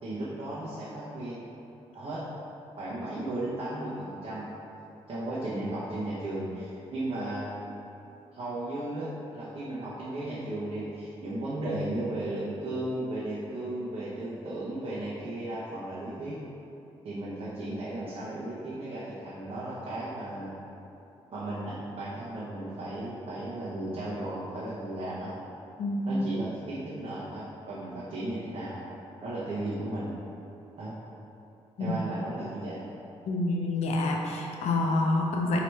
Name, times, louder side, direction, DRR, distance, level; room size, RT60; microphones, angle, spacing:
voice 1, 0.0-1.4 1.9-2.3 2.8-4.5 5.1-7.5 8.3-16.5 17.0-20.6 21.3-25.3 26.1-28.8 29.2-30.1 30.8-31.0 31.8-32.9, right 1 dB, 55° right, -9 dB, 0.8 m, -35 dB
voice 2, 25.8-26.2 31.8-32.0 33.3-35.6, left 2 dB, 75° left, 1 dB, 0.5 m, -27 dB
4.4 x 2.9 x 3.2 m, 3.0 s
cardioid pair, 75°, 11 cm